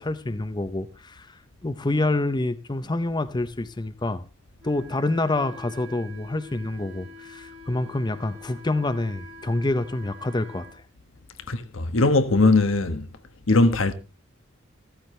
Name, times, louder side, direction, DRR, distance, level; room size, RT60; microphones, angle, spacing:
voice 1, 0.0-4.2 4.6-10.8, left 2 dB, 20° left, 0.6 m, -27 dB
Wind instrument woodwind instrument, 4.6-10.8, left 1 dB, 85° right, 3.6 m, -45 dB
voice 2, 11.5-13.1 13.5-13.9, left 2 dB, 80° left, 1.2 m, -20 dB
14.5 x 13.5 x 3.2 m
head